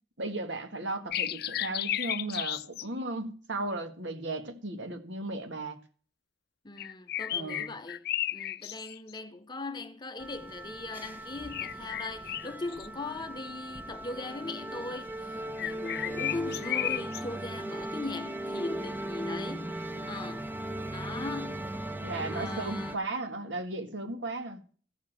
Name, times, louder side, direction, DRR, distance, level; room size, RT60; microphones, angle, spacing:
voice 1, 0.2-5.8 7.3-7.7 22.0-24.6, right 2 dB, 80° right, 1.7 m, -35 dB
sound 1, 1.1-2.8 6.8-9.2 11.5-12.9 15.6-17.2, left 12 dB, 55° left, 0.5 m, -33 dB
voice 2, 6.6-8.1 8.3-19.8 20.1-20.5 20.9-21.7 22.3-23.0, left 3 dB, 25° left, 0.7 m, -39 dB
sound 2, 10.2-23.0, right 1 dB, 10° right, 0.8 m, -38 dB
14.0 x 5.1 x 7.4 m
head